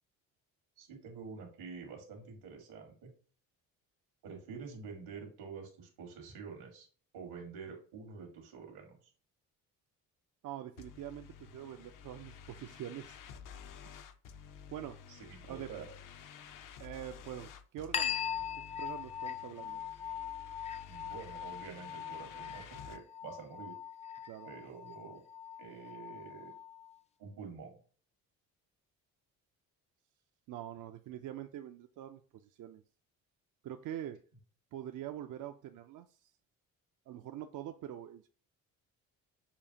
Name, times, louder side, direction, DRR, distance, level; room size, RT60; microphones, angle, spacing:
voice 1, 0.8-3.1 4.2-6.9 7.1-9.0 15.1-15.9 20.8-23.8 24.4-25.2 25.6-26.5 27.2-27.8, right 5 dB, 85° right, 1.7 m, -48 dB
voice 2, 10.4-13.2 13.8-13.9 14.7-15.0 15.4-15.7 16.8-18.4 18.8-19.8 24.3-24.5 30.5-32.8 33.6-34.2 34.7-36.3 37.1-38.3, right 11 dB, 60° right, 0.5 m, -44 dB
sound 1, 10.8-23.0, left 7 dB, 60° left, 0.7 m, -52 dB
sound 2, 17.9-27.0, left 8 dB, 20° left, 0.3 m, -41 dB
6.9 x 2.5 x 2.8 m
supercardioid pair, 65°, 36 cm